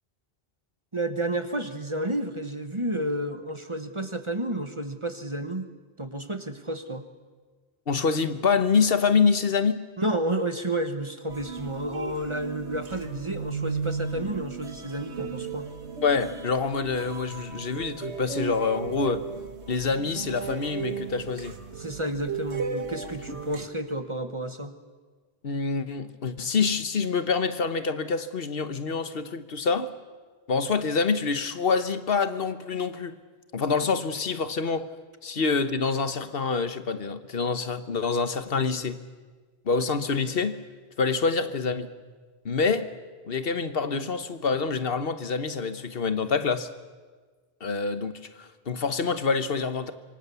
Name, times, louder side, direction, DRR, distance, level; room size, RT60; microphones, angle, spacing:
voice 1, 0.9-5.7 6.0-7.1 10.0-15.7 21.8-24.8, right 1 dB, 30° right, 1.3 m, -31 dB
voice 2, 7.9-9.8 16.0-19.2 19.7-21.6 25.4-29.9 30.5-33.2 33.5-34.9 35.2-39.0 39.6-40.6 41.0-41.9 42.4-42.9 43.3-46.7 47.6-49.9, left 5 dB, 60° left, 1.4 m, -26 dB
sound 1, 11.3-23.7, right 5 dB, 80° right, 1.8 m, -35 dB
26.5 x 24.0 x 7.0 m
omnidirectional pair, 1.1 m